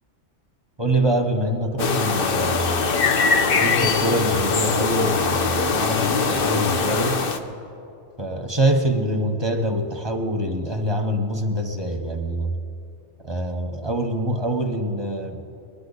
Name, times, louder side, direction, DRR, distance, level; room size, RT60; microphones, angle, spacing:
voice 1, 0.8-2.9 3.6-7.2 8.2-12.5 13.2-15.4, right 1 dB, 25° right, 3 dB, 0.9 m, -25 dB
sound 1, 1.8-7.4, left 4 dB, 55° left, 0.9 m, -21 dB
20.5 x 11.5 x 4.0 m, 2.9 s
omnidirectional pair, 1.3 m